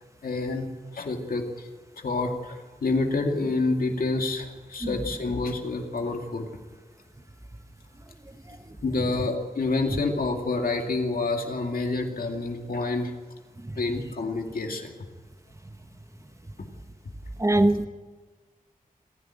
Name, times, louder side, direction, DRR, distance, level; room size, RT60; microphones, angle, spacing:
voice 1, 0.2-1.7 1.9-6.5 8.8-13.1 13.8-15.0, left 3 dB, 85° left, 2.3 m, -28 dB
voice 2, 17.4-17.9, right 1 dB, 20° right, 1.4 m, -22 dB
27.0 x 11.0 x 8.9 m
cardioid pair, 45°, 15 cm